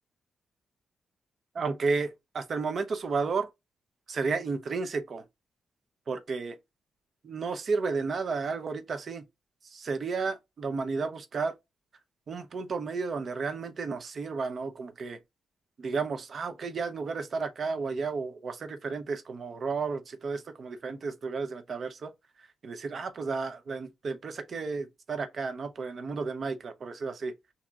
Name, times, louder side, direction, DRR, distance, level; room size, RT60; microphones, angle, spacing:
voice 1, 1.5-3.5 4.1-5.2 6.1-6.6 7.2-9.2 9.6-11.5 12.3-15.2 15.8-22.1 22.6-27.3, right 4 dB, 50° right, 0.7 m, -32 dB
6.1 x 2.8 x 2.4 m
cardioid pair, 110°, 0 cm